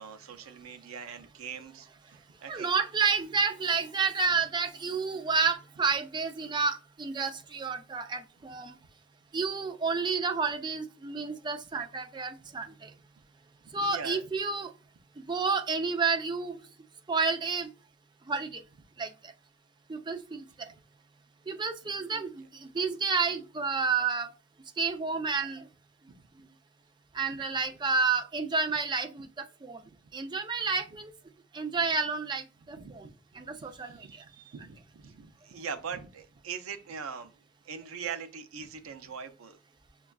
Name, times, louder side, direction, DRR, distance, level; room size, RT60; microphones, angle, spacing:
voice 1, 0.0-2.7 13.6-14.3 22.1-22.2 32.7-33.0 33.5-37.3 37.6-39.6, right 6 dB, 90° right, 0.5 m, -42 dB
voice 2, 2.5-8.7 9.3-12.9 13.7-14.7 15.3-16.6 17.1-17.7 18.3-18.6 19.0-19.1 19.9-20.5 21.5-24.3 24.8-25.7 27.1-29.3 29.6-29.8 30.1-31.1 31.5-33.1 33.4-34.0, right 4 dB, 20° right, 0.3 m, -30 dB
6.2 x 2.3 x 2.2 m
head